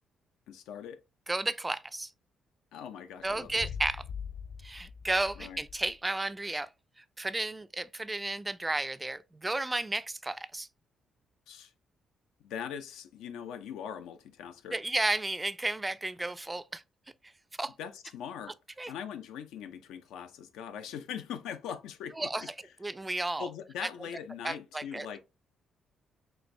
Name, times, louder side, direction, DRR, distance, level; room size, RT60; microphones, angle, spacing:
voice 1, 0.5-1.0 2.7-3.7 5.4-5.6 11.5-11.7 12.4-14.8 17.8-18.5 18.9-22.5 23.4-25.2, left 8 dB, 90° left, 0.5 m, -41 dB
voice 2, 1.3-2.1 3.2-4.0 4.6-6.7 7.0-10.7 14.7-16.8 17.2-17.3 17.6-17.7 18.8-18.9 22.2-22.4 22.8-23.5 23.8-23.9 24.4-25.1, right 2 dB, 15° right, 0.3 m, -33 dB
sound 1, 3.2-6.0, left 7 dB, 50° left, 0.8 m, -43 dB
4.2 x 2.5 x 3.2 m
cardioid pair, 90°, 0 cm